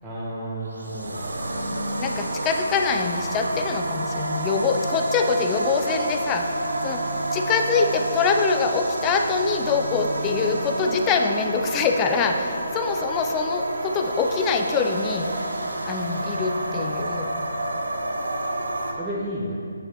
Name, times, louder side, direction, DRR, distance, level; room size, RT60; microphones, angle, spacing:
voice 1, 0.0-1.3 12.9-13.0 18.9-19.6, right 1 dB, 5° right, -9 dB, 0.8 m, -32 dB
sound 1, 0.6-18.9, right 1 dB, 65° right, 0.9 m, -29 dB
voice 2, 2.0-6.6 6.8-15.3 15.8-17.3, left 5 dB, 15° left, 5 dB, 0.4 m, -24 dB
8.6 x 7.0 x 3.2 m, 2.4 s
figure-of-eight pair, 145°, 0 cm